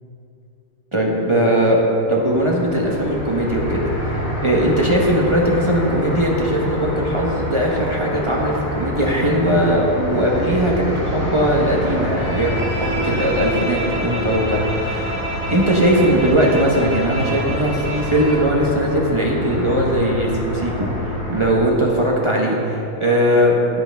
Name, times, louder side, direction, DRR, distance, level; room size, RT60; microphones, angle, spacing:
voice 1, 0.9-1.8 2.1-15.1 15.5-20.9 21.3-23.8, right 1 dB, 25° right, -3 dB, 0.7 m, -19 dB
sound 1, 2.2-21.4, left 1 dB, 55° left, 3.3 m, -27 dB
Bowed string instrument, 12.1-18.5, right 1 dB, 10° left, 1.8 m, -29 dB
11.0 x 8.9 x 3.5 m, 2.7 s
omnidirectional pair, 2.0 m